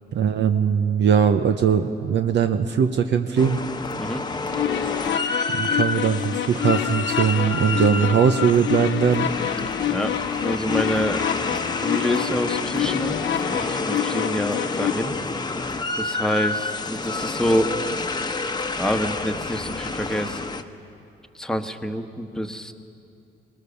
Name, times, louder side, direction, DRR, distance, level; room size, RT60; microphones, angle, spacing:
voice 1, 0.1-3.6 5.5-9.3, right 7 dB, 60° right, 7 dB, 0.9 m, -20 dB
sound 1, 3.4-20.6, left 3 dB, 20° left, 1.1 m, -29 dB
sound 2, 4.5-14.9, left 12 dB, 70° left, 0.6 m, -27 dB
voice 2, 9.9-11.2 11.8-15.2 16.0-17.8 18.8-20.4 21.3-22.7, equal, 5° left, 5 dB, 1.3 m, -27 dB
24.5 x 19.0 x 7.0 m, 2.6 s
cardioid pair, 90°, 20 cm